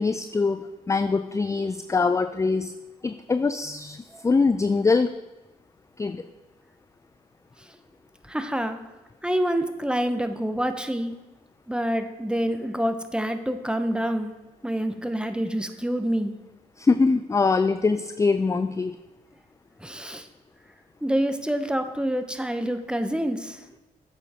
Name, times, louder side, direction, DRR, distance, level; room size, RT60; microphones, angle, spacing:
voice 1, 0.0-2.7 3.0-5.1 6.0-6.2 16.8-19.0, left 4 dB, 15° left, 11 dB, 0.4 m, -23 dB
voice 2, 8.2-8.8 9.2-11.1 11.7-14.3 14.6-16.4 19.8-20.3 21.0-23.6, equal, 5° right, 9 dB, 0.9 m, -27 dB
8.8 x 6.8 x 3.6 m, 1.1 s
hypercardioid pair, 40°, 19 cm